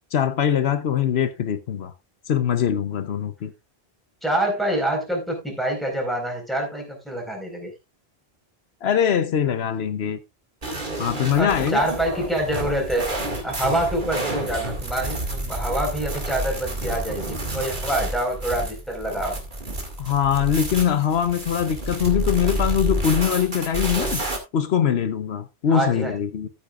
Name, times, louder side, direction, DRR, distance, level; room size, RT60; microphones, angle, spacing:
voice 1, 0.1-1.9 2.3-3.5 8.8-10.2 11.0-11.9 19.1-19.2 20.0-24.2 24.5-26.5, left 8 dB, 80° left, 1.1 m, -22 dB
voice 2, 4.2-7.7 11.4-13.1 13.4-19.4 25.7-26.1, right 1 dB, ahead, 4.5 m, -26 dB
sound 1, 10.6-24.4, right 1 dB, 50° right, 2.3 m, -29 dB
14.0 x 8.9 x 2.4 m
omnidirectional pair, 1.0 m